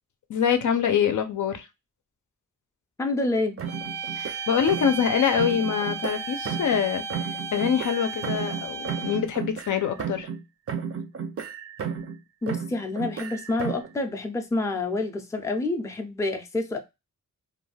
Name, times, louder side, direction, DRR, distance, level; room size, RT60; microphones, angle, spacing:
voice 1, 0.3-1.7 4.2-7.0 7.5-10.3, left 8 dB, 70° left, 0.5 m, -24 dB
voice 2, 3.0-3.6 12.4-16.8, left 2 dB, 10° left, 0.4 m, -28 dB
sound 1, 3.6-5.1 5.4-6.9 7.1-10.4 10.7-12.2 12.5-13.9, right 6 dB, 45° right, 0.5 m, -33 dB
sound 2, 3.7-9.4, right 5 dB, 80° right, 0.7 m, -35 dB
2.5 x 2.2 x 3.2 m
wide cardioid pair, 105°, 32 cm